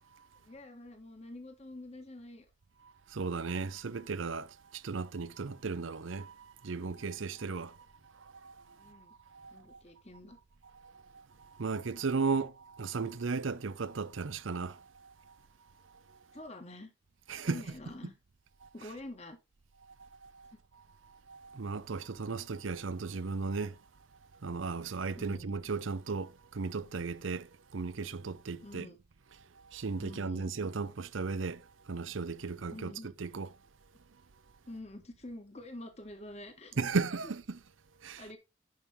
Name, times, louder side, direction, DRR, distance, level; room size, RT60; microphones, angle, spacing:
voice 1, 0.4-2.5 8.8-9.1 9.5-10.4 16.3-16.9 17.4-18.2 18.7-19.4 20.5-20.6 25.2-25.5 28.6-29.0 30.0-30.5 32.7-33.1 34.7-36.9 38.2-38.4, left 1 dB, 30° left, 1.8 m, -47 dB
voice 2, 3.1-7.8 8.1-9.8 10.8-15.3 17.3-17.6 18.6-18.7 20.0-20.5 21.1-23.8 24.4-28.9 29.6-32.9 33.2-33.5 36.8-37.6 38.0-38.2, right 4 dB, 75° right, 0.6 m, -36 dB
10.5 x 5.5 x 3.6 m
head